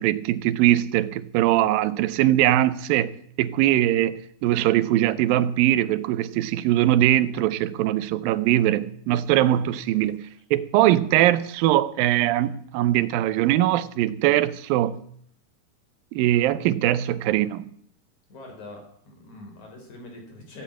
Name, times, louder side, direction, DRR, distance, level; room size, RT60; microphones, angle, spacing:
voice 1, 0.0-10.2 10.5-15.0 16.1-17.6, right 13 dB, 90° right, 2.5 m, -21 dB
voice 2, 18.3-20.6, left 2 dB, 55° left, 5.0 m, -43 dB
15.5 x 7.8 x 8.5 m
omnidirectional pair, 4.0 m